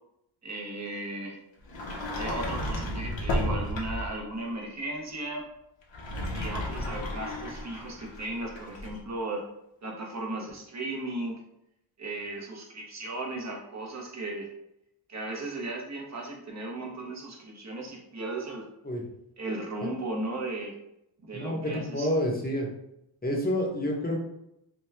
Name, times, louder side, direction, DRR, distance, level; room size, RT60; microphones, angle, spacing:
voice 1, 0.4-1.4 2.1-5.5 6.3-9.4 9.8-11.4 12.0-14.5 15.1-18.7 19.4-20.8 21.2-22.1, right 2 dB, 35° right, 0 dB, 0.8 m, -36 dB
Sliding door, 1.7-4.2 5.8-9.0, left 1 dB, 65° left, 0.8 m, -33 dB
voice 2, 21.3-22.7 23.2-24.2, equal, 20° left, 0 dB, 0.8 m, -28 dB
2.9 x 2.2 x 3.4 m, 0.82 s
cardioid pair, 70°, 49 cm